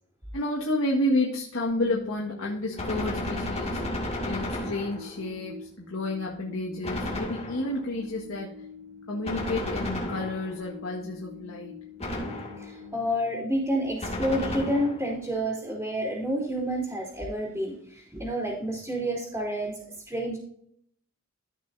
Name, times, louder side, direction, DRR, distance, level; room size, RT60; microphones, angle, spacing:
voice 1, 0.3-3.8 4.2-8.5 9.1-11.8, left 1 dB, 80° left, -3 dB, 1.8 m, -30 dB
sound 1, 1.7-13.8, left 3 dB, 75° right, 2.8 m, -45 dB
Gunshot gunfire, 2.8-5.3 6.8-7.9 9.2-10.7 12.0-12.8 14.0-15.2, left 1 dB, 30° left, 2.3 m, -33 dB
voice 2, 12.6-19.7 20.1-20.4, equal, 10° right, -9 dB, 3.4 m, -29 dB
15.0 x 6.1 x 2.7 m, 0.66 s
head